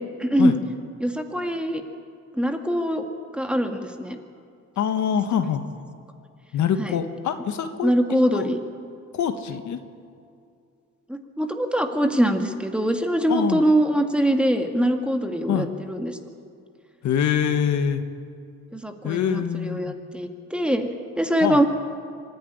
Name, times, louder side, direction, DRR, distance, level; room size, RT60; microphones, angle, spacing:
voice 1, 0.2-0.6 1.0-1.8 2.3-3.0 3.3-4.2 6.8-6.9 7.8-8.6 11.1-16.2 18.7-20.9 21.2-21.7, equal, 5° right, 5 dB, 1.8 m, -23 dB
voice 2, 4.8-5.6 6.5-7.9 8.3-8.5 9.1-9.8 13.3-13.6 15.5-15.7 17.0-18.0 19.0-19.9 21.4-21.7, left 8 dB, 70° left, 8 dB, 1.5 m, -24 dB
25.0 x 10.5 x 9.9 m, 2.4 s
cardioid pair, 90°, 30 cm